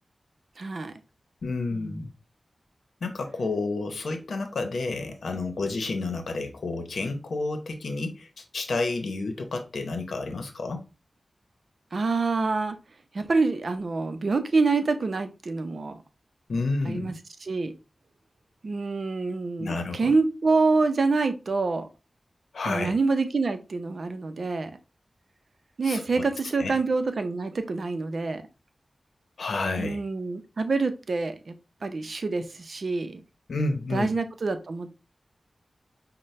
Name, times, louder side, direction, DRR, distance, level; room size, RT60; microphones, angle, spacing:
voice 1, 0.6-0.9 1.7-1.9 11.9-12.8 13.1-16.0 16.8-17.1 17.4-17.7 18.6-21.9 22.7-24.7 25.8-28.4 29.8-31.5 31.8-33.2 33.9-34.9, right 3 dB, 65° right, 9 dB, 0.6 m, -26 dB
voice 2, 1.4-2.1 3.0-10.8 16.5-17.1 19.6-20.1 22.5-22.9 25.8-26.2 26.6-26.8 29.4-30.0 33.5-34.1, left 3 dB, 85° left, 5 dB, 0.8 m, -30 dB
5.5 x 2.1 x 3.2 m, 0.29 s
wide cardioid pair, 60°, 0 cm